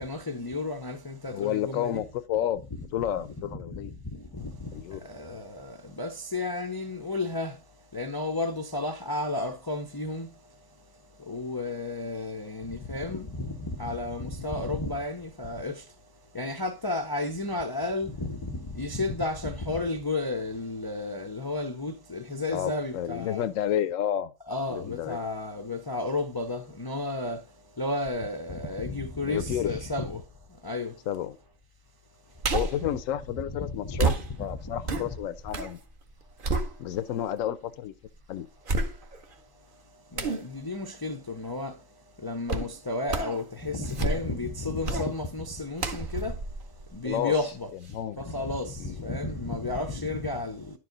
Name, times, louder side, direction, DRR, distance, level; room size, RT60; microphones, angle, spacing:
voice 1, 0.0-2.0 4.4-4.7 5.1-7.5 7.9-10.3 11.3-15.8 16.3-23.5 24.5-27.4 27.8-30.2 30.6-30.9 33.8-34.0 40.1-41.7 42.2-46.4 46.9-47.7 48.2-50.7, left 2 dB, 35° left, 0.3 m, -32 dB
voice 2, 1.3-3.9 4.7-5.0 22.5-24.3 24.7-25.2 29.2-29.7 31.1-31.4 32.5-35.8 36.8-37.9 38.3-38.5 47.0-47.3 47.9-48.2 48.8-49.0, left 11 dB, 80° left, 1.0 m, -31 dB
sound 1, 32.4-32.9 34.0-35.8 36.1-37.2 37.7-37.8 38.7-39.3 40.2-40.5 42.5-42.7 43.1-43.4 43.8-44.4 44.8-45.1 45.8-47.5 47.9-48.0, right 3 dB, 45° right, 1.0 m, -30 dB
10.5 x 4.7 x 3.8 m
omnidirectional pair, 1.4 m